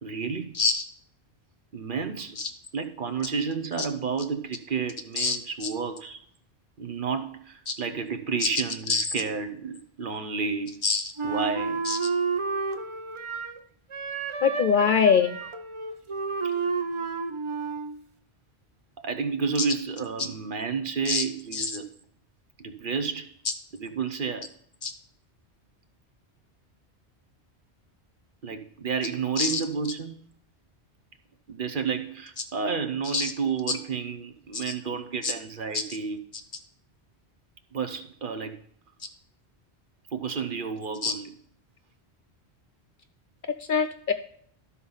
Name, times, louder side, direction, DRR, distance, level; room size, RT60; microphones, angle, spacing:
voice 1, 0.0-0.6 1.7-2.4 2.7-6.2 6.8-10.8 11.2-11.8 16.4-16.6 19.0-21.9 22.6-23.4 23.7-24.5 28.4-30.2 31.5-36.2 37.7-38.6 40.1-41.3, right 5 dB, 55° right, 0.9 m, -31 dB
Wind instrument woodwind instrument, 11.2-13.6 13.9-18.0, right 5 dB, 35° right, 0.5 m, -30 dB
voice 2, 14.4-15.4 21.1-21.2 21.5-21.7 24.8-24.9 29.4-29.6 33.1-33.3 35.2-35.3 35.7-35.8 41.0-41.1 43.7-44.1, left 5 dB, 55° left, 0.6 m, -23 dB
12.5 x 4.2 x 5.5 m
omnidirectional pair, 1.1 m